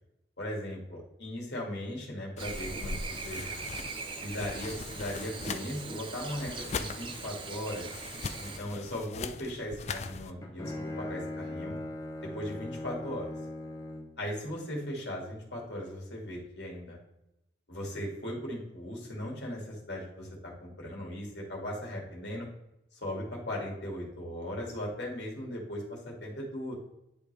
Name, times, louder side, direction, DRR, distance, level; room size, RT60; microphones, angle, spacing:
voice 1, 0.4-3.4 4.2-7.9 8.4-11.7 12.2-13.3 14.2-17.0 17.7-22.5 22.9-26.7, left 1 dB, 70° left, -2 dB, 2.2 m, -38 dB
sound 1, 2.4-10.3, left 4 dB, 35° left, 0.3 m, -41 dB
Chirp tweet / Buzz, 2.4-8.6, right 4 dB, 25° right, 0.5 m, -41 dB
Bowed string instrument, 10.1-14.2, left 1 dB, 20° left, 0.8 m, -39 dB
10.0 x 3.7 x 3.3 m, 0.86 s
head